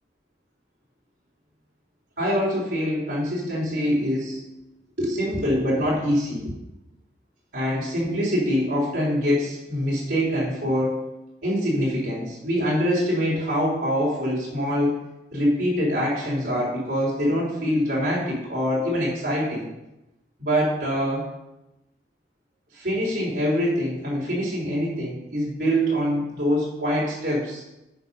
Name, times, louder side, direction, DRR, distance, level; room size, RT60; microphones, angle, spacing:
voice 1, 2.2-4.4 5.0-6.5 7.5-11.0 11.4-15.0 15.3-19.7 20.4-21.3 22.7-27.6, equal, 60° right, -6 dB, 3.5 m, -24 dB
9.5 x 6.7 x 5.4 m, 0.93 s
head